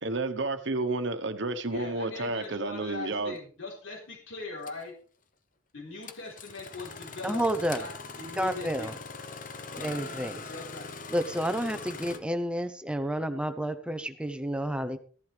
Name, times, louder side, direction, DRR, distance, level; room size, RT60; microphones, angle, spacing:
voice 1, 0.0-3.4, right 2 dB, 65° right, 1.2 m, -31 dB
voice 2, 1.7-4.9 5.7-7.4 7.7-7.9 8.2-8.9 10.5-10.9, left 3 dB, 85° left, 4.0 m, -40 dB
Engine starting, 3.4-3.5 4.6-4.8 6.0-12.2, left 4 dB, 45° left, 1.0 m, -42 dB
voice 3, 7.2-7.9 8.4-9.0 9.8-10.4 11.1-15.0, equal, 5° right, 0.8 m, -30 dB
15.5 x 11.5 x 3.4 m
head